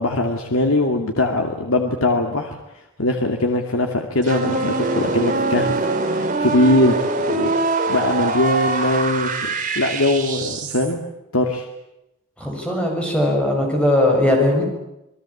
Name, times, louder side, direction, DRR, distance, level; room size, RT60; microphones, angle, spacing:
voice 1, 0.0-2.6 3.0-5.8 6.0-7.0 7.3-7.5 7.9-9.4 9.8-11.0 11.3-11.7, left 1 dB, 75° left, 3 dB, 2.5 m, -21 dB
sound 1, 4.2-10.9, right 3 dB, 35° right, 3.9 m, -23 dB
voice 2, 12.4-14.6, left 1 dB, 5° left, 1 dB, 6.8 m, -19 dB
28.5 x 20.0 x 8.6 m, 0.88 s
head